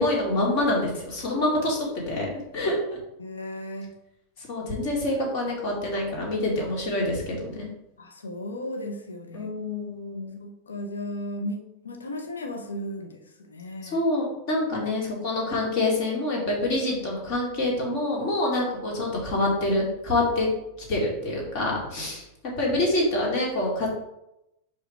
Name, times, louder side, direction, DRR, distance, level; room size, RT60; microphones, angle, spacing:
voice 1, 0.0-2.3 2.5-3.0 4.4-7.7 9.3-10.4 13.9-20.5 20.9-22.2 22.6-23.9, left 1 dB, 45° left, -2 dB, 2.4 m, -26 dB
voice 2, 3.2-3.9 8.0-9.5 10.4-14.0, left 1 dB, 70° left, 4 dB, 1.0 m, -35 dB
5.0 x 5.0 x 4.6 m, 0.86 s
figure-of-eight pair, 90°, 0 cm